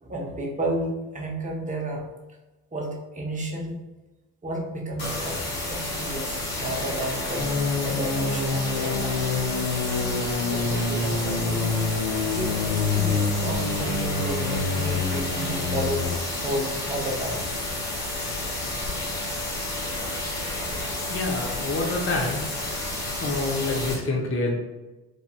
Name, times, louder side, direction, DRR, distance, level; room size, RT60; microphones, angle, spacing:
voice 1, 0.0-2.0 2.7-3.8 4.4-9.3 10.4-11.7 12.3-16.1 16.4-17.5, right 1 dB, 15° right, -1 dB, 0.7 m, -32 dB
sound 1, 5.0-23.9, left 2 dB, 55° left, 1.3 m, -31 dB
sound 2, 7.3-16.2, left 4 dB, 85° left, 0.6 m, -27 dB
voice 2, 21.1-24.6, left 2 dB, 30° left, 0 dB, 0.7 m, -28 dB
3.2 x 2.5 x 2.3 m, 1.1 s
hypercardioid pair, 55°, 47 cm